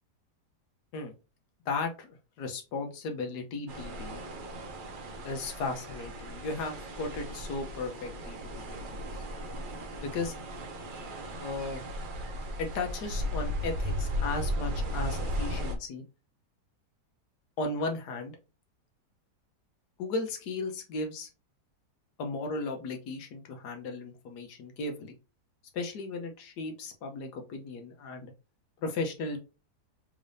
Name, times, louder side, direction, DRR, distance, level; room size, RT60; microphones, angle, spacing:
voice 1, 1.7-4.2 5.2-9.0 10.0-10.3 11.4-11.8 12.6-16.0 17.6-18.4 20.0-21.3 22.2-25.2 25.7-28.3 28.8-29.4, left 3 dB, 80° left, 4 dB, 1.4 m, -35 dB
sound 1, 3.7-15.8, equal, 60° right, 0.5 m, -36 dB
3.6 x 3.4 x 2.5 m, 0.30 s
omnidirectional pair, 1.8 m